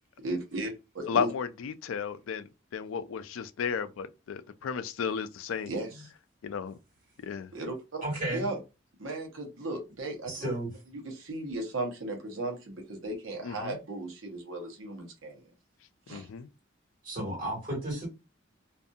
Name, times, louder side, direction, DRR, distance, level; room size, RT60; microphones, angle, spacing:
voice 1, 0.2-1.3 5.6-6.0 7.5-8.0 8.3-8.6 9.0-10.5 11.0-15.4 16.1-16.3, right 2 dB, 80° right, 1.0 m, -36 dB
voice 2, 1.1-5.8 6.4-6.8 7.2-7.5 13.4-13.8 16.1-16.5, left 6 dB, 80° left, 0.4 m, -34 dB
voice 3, 8.0-8.5 10.3-10.7 17.0-18.1, right 1 dB, 45° right, 1.7 m, -33 dB
2.6 x 2.5 x 2.3 m
head